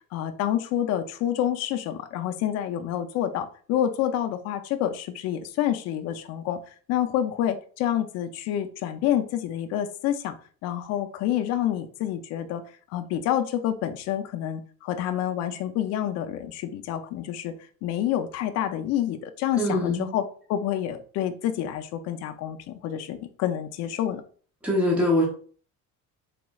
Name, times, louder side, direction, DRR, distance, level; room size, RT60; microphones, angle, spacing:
voice 1, 0.1-6.6 6.9-10.4 10.6-12.6 12.9-17.5 17.8-20.2 20.5-24.2, left 11 dB, 55° left, 8 dB, 0.5 m, -28 dB
voice 2, 19.6-20.1 24.6-25.2, left 1 dB, 5° right, -3 dB, 0.8 m, -23 dB
4.1 x 3.0 x 2.3 m, 0.43 s
cardioid pair, 175°, 30 cm